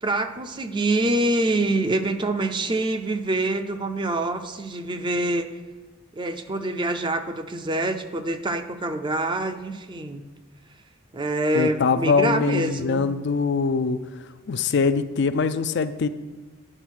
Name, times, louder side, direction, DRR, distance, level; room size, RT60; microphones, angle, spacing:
voice 1, 0.0-5.5 6.1-10.2 11.1-13.0, right 2 dB, 25° right, 8 dB, 0.5 m, -25 dB
voice 2, 11.5-14.0 14.5-16.1, left 5 dB, 55° left, 11 dB, 0.4 m, -23 dB
9.9 x 4.6 x 6.2 m, 1.2 s
head